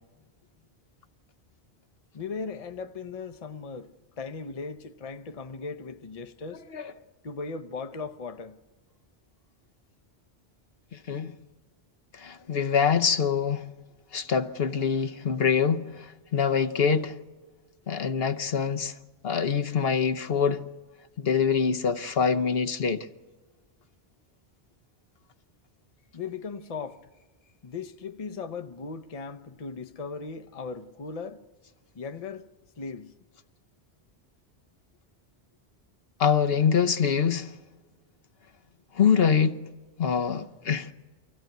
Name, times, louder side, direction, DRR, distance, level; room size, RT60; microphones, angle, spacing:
voice 1, 2.1-3.9 4.2-6.6 7.2-8.6 26.1-27.0 27.6-31.4 31.9-32.5 32.8-33.1, left 4 dB, 40° left, 0.8 m, -37 dB
voice 2, 10.9-11.4 12.1-13.7 14.1-17.2 17.9-19.0 19.2-20.6 21.2-23.1 36.2-37.5 38.9-39.6 40.0-40.9, left 6 dB, 65° left, 1.1 m, -25 dB
24.5 x 16.0 x 9.1 m
omnidirectional pair, 1.1 m